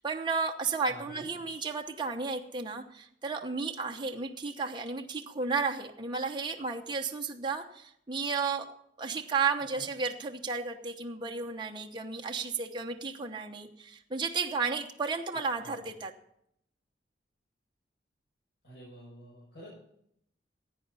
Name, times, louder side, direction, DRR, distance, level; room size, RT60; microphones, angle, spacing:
voice 1, 0.0-8.7 9.0-16.1, right 4 dB, 25° right, 2 dB, 1.0 m, -33 dB
voice 2, 0.9-1.3 9.8-9.9 15.6-15.8 18.6-19.7, equal, 80° left, -8 dB, 7.0 m, -49 dB
16.5 x 9.2 x 5.6 m, 0.73 s
head